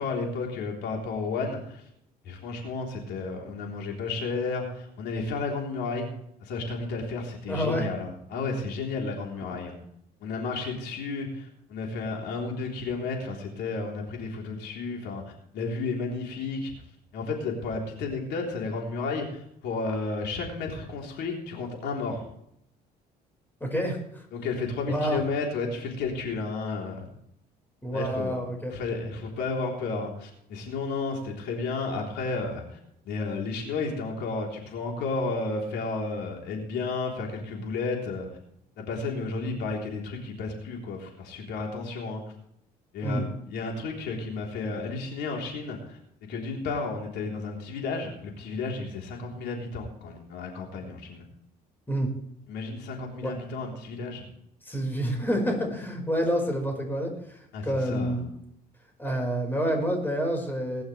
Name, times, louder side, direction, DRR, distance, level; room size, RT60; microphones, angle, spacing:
voice 1, 0.0-1.8 2.2-6.1 6.4-9.7 10.2-15.2 15.5-16.8 17.1-22.2 24.3-27.1 27.9-28.4 28.7-32.8 33.1-38.3 38.8-42.2 42.9-46.0 46.3-51.2 52.5-54.3 57.5-58.2, left 3 dB, 80° left, 0 dB, 3.7 m, -32 dB
voice 2, 7.5-7.9 23.6-24.2 24.9-25.2 27.8-28.7 43.0-43.2 51.9-52.1 53.2-53.3 54.6-58.3 59.0-60.8, equal, 10° left, 2 dB, 5.0 m, -28 dB
20.5 x 11.5 x 3.4 m, 0.73 s
cardioid pair, 110°, 17 cm